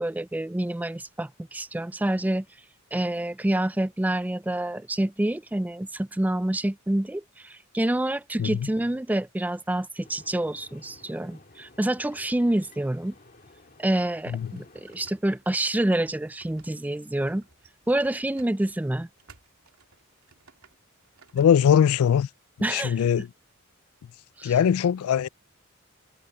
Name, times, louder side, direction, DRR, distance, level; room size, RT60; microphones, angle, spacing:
voice 1, 0.0-2.5 2.9-13.1 13.8-17.4 17.9-19.1 22.6-23.0 24.4-24.6, right 1 dB, 5° right, 0.3 m, -27 dB
sound 1, 10.0-15.1, left 2 dB, 40° left, 2.2 m, -54 dB
sound 2, 14.4-21.6, right 4 dB, 90° right, 2.9 m, -57 dB
voice 2, 21.3-22.3 22.7-23.3 24.4-25.3, left 8 dB, 85° left, 0.3 m, -20 dB
head